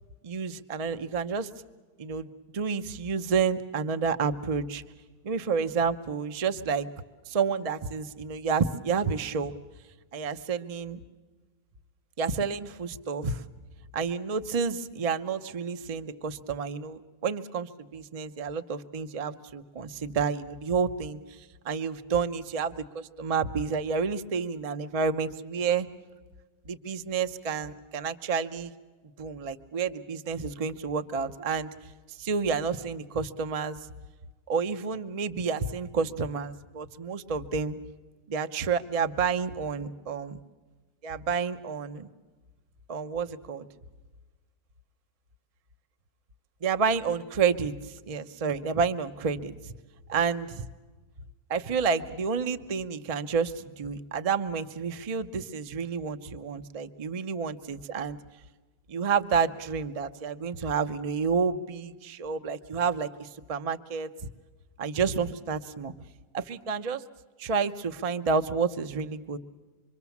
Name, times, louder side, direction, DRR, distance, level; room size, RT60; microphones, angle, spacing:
voice 1, 0.2-1.5 2.0-4.8 5.2-6.9 7.3-9.5 10.1-11.0 12.2-13.4 13.9-25.9 26.7-28.7 29.2-31.7 32.1-33.8 34.5-37.8 38.3-40.4 41.0-42.1 42.9-43.7 46.6-49.7 50.1-50.6 51.5-58.2 58.9-64.1 64.8-65.9 66.3-67.0 67.4-69.4, right 5 dB, 55° right, 9 dB, 0.4 m, -30 dB
26.0 x 23.0 x 7.1 m, 1.3 s
omnidirectional pair, 1.8 m